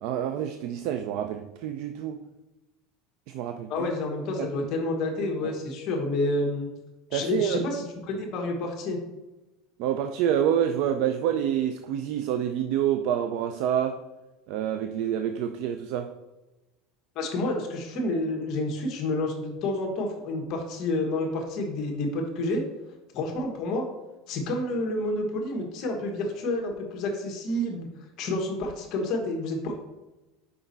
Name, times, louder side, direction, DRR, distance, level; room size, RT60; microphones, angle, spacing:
voice 1, 0.0-2.2 3.3-3.9 7.1-7.7 9.8-14.0 14.5-16.1, right 10 dB, 55° right, 8 dB, 0.4 m, -27 dB
voice 2, 3.7-6.7 7.1-9.0 17.1-22.6 23.1-23.8 24.3-27.9 28.2-29.7, left 2 dB, 40° left, 1 dB, 1.2 m, -29 dB
5.9 x 5.2 x 4.0 m, 1.1 s
cardioid pair, 170°, 0 cm